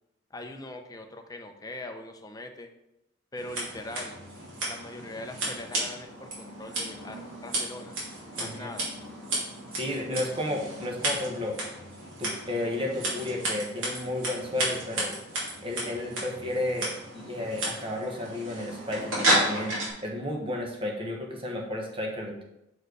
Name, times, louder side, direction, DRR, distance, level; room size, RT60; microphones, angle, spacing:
voice 1, 0.3-2.7 3.3-4.2 4.7-8.0 8.4-8.9 10.1-10.2, left 2 dB, 20° left, 5 dB, 0.6 m, -41 dB
Scissors, 3.4-19.9, right 1 dB, 75° right, 2.6 m, -33 dB
voice 2, 8.4-8.7 9.7-11.6 12.2-15.1 15.6-19.7 20.0-22.4, left 1 dB, 25° right, 0 dB, 1.2 m, -32 dB
6.4 x 4.6 x 4.7 m, 0.88 s
head